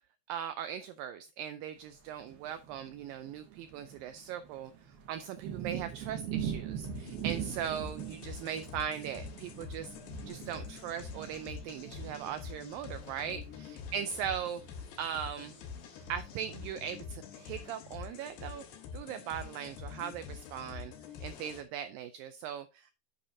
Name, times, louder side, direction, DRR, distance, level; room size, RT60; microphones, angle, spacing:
voice 1, 0.3-4.7 5.1-9.9 10.3-14.6 15.0-15.6 16.1-18.6 18.9-20.9 21.2-22.9, right 9 dB, 90° right, 2.0 m, -39 dB
sound 1, 1.9-16.7, right 9 dB, 75° right, 3.2 m, -43 dB
sound 2, 6.8-21.6, left 6 dB, 90° left, 3.5 m, -46 dB
8.7 x 8.0 x 2.7 m
omnidirectional pair, 4.7 m